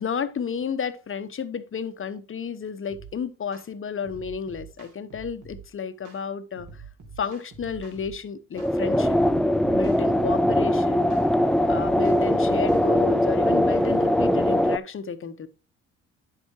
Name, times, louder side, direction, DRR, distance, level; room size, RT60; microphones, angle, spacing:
voice 1, 0.0-6.8 7.2-9.2 9.7-11.2 11.7-15.5, left 6 dB, 35° left, 0.9 m, -32 dB
sound 1, 2.9-3.1 3.5-3.7 4.0-5.6 6.0-6.2 6.6-8.2 8.6-8.8 9.1-10.7 11.1-11.3 11.6-12.9, right 5 dB, 60° right, 2.5 m, -45 dB
sound 2, 8.6-14.8, left 1 dB, ahead, 0.3 m, -21 dB
9.7 x 7.1 x 3.0 m
hypercardioid pair, 55°, 36 cm